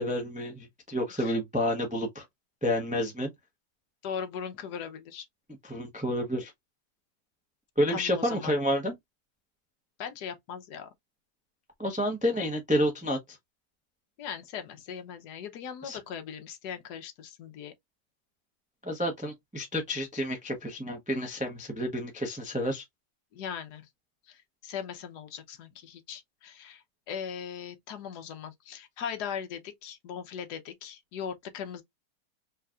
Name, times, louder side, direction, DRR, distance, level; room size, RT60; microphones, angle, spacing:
voice 1, 0.0-2.2 2.6-3.3 5.6-6.5 7.8-9.0 11.8-13.4 15.8-16.0 18.8-22.8, equal, 10° right, 0.4 m, -29 dB
voice 2, 4.0-5.3 7.9-8.5 10.0-10.9 14.2-17.7 23.3-23.8 24.3-31.8, left 7 dB, 70° left, 1.3 m, -39 dB
4.6 x 2.8 x 2.4 m
omnidirectional pair, 1.9 m